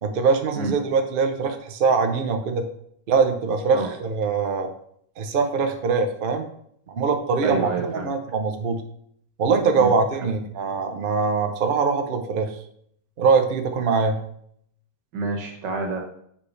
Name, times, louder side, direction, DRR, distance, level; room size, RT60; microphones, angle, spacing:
voice 1, 0.0-2.6 3.1-4.7 5.2-6.5 6.9-8.8 9.4-12.5 13.2-14.2, right 5 dB, 55° right, 5 dB, 0.6 m, -22 dB
voice 2, 7.4-8.1 9.8-9.9 15.1-16.0, right 3 dB, 75° right, 3 dB, 1.8 m, -28 dB
6.9 x 5.2 x 3.2 m, 0.68 s
omnidirectional pair, 1.9 m